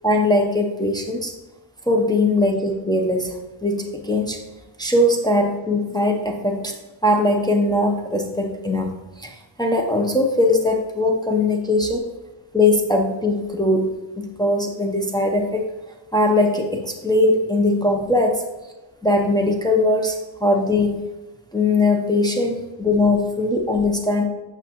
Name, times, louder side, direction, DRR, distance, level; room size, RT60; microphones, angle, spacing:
voice 1, 0.0-1.3 1.9-4.4 4.8-6.7 7.0-12.1 12.5-13.9 14.2-15.7 16.1-18.4 19.0-21.0 21.5-24.3, left 2 dB, 10° left, 1 dB, 0.7 m, -20 dB
8.7 x 5.6 x 2.9 m, 1.1 s
wide cardioid pair, 80°, 48 cm